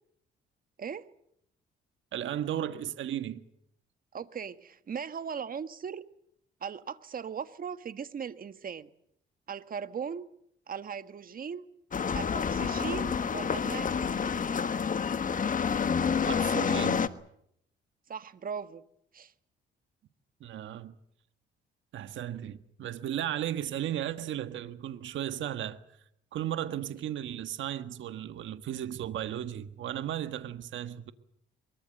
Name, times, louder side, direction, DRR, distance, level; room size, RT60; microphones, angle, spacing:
voice 1, 2.1-3.4 16.2-17.1 20.4-20.9 21.9-25.8 26.3-31.1, right 11 dB, 75° right, 1.6 m, -35 dB
voice 2, 4.1-6.0 6.6-8.9 9.5-10.3 10.7-11.7 12.1-14.5 18.1-18.8 19.1-19.3, right 7 dB, 45° right, 1.6 m, -38 dB
sound 1, 11.9-17.1, left 6 dB, 40° left, 1.4 m, -28 dB
23.5 x 22.5 x 7.8 m
cardioid pair, 90°, 20 cm